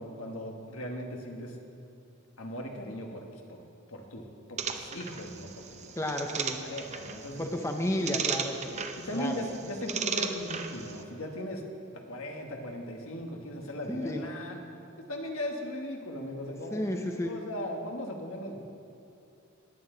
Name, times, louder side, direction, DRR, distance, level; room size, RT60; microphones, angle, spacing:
voice 1, 0.0-1.6 2.4-3.2 3.5-3.6 3.9-5.8 6.6-7.4 9.0-11.6 12.1-14.6 15.1-16.8 17.2-18.6, left 1 dB, 80° left, 2 dB, 1.5 m, -38 dB
sound 1, 4.6-11.0, right 6 dB, 35° right, 0.6 m, -36 dB
voice 2, 6.0-6.6 7.4-9.5 13.9-14.2 16.7-17.3, left 1 dB, 15° left, 3 dB, 0.6 m, -32 dB
18.0 x 9.3 x 3.9 m, 2.7 s
head